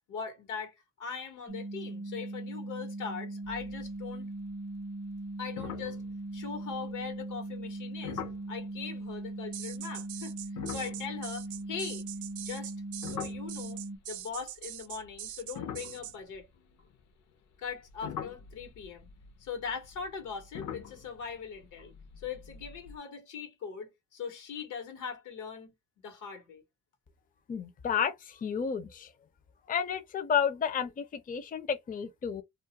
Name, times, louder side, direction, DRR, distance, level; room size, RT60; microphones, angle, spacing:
voice 1, 0.1-4.3 5.4-6.0 6.3-8.2 8.5-10.4 10.7-12.0 12.4-12.7 13.0-16.5 17.6-19.1 19.4-26.6, left 6 dB, 90° left, 1.1 m, -41 dB
sound 1, 1.5-14.0, right 2 dB, 20° right, 0.5 m, -39 dB
sound 2, 3.4-4.1 4.4-4.8 5.1-5.2 5.6-6.9 8.0-8.5 10.4-14.0 14.8-17.0 17.6-23.0, left 8 dB, 65° left, 0.7 m, -44 dB
sound 3, 9.5-16.2, right 13 dB, 75° right, 0.5 m, -43 dB
voice 2, 27.5-29.1 29.7-32.4, left 7 dB, 30° left, 0.5 m, -31 dB
2.4 x 2.1 x 2.8 m
cardioid pair, 90°, 30 cm